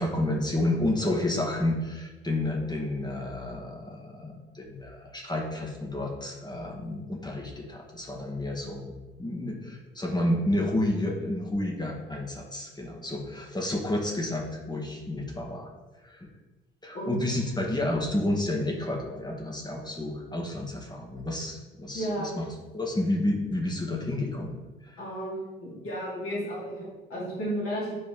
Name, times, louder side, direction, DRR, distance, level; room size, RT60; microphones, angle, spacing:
voice 1, 0.0-15.7 16.0-16.3 16.8-22.1 22.4-22.5 22.7-25.0, left 1 dB, 15° left, -1 dB, 2.0 m, -30 dB
voice 2, 16.9-17.2 21.9-22.3 25.0-28.0, right 1 dB, 50° left, -6 dB, 2.6 m, -33 dB
9.7 x 4.1 x 3.8 m, 1.2 s
figure-of-eight pair, 45°, 29 cm